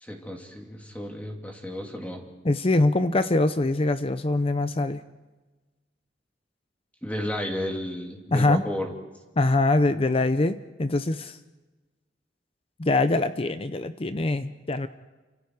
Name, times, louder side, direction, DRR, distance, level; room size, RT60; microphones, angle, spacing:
voice 1, 0.0-2.3 7.0-8.9, left 1 dB, 10° left, 1 dB, 2.7 m, -33 dB
voice 2, 2.4-5.0 8.3-8.6 9.4-11.4 12.8-14.9, left 2 dB, 30° left, 11 dB, 0.7 m, -23 dB
29.5 x 26.0 x 4.7 m, 1.2 s
head